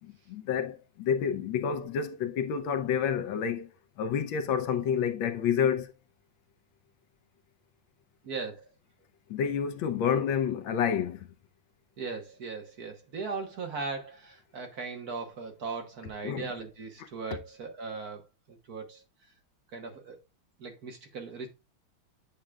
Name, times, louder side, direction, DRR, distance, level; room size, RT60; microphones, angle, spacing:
voice 1, 0.0-3.7 4.0-5.9 9.3-11.3 16.2-16.5, left 7 dB, 75° left, 1.4 m, -29 dB
voice 2, 8.2-8.7 12.0-18.2 18.5-19.0 19.7-20.2 20.6-21.5, right 4 dB, 55° right, 1.5 m, -38 dB
8.6 x 6.1 x 2.3 m
omnidirectional pair, 2.2 m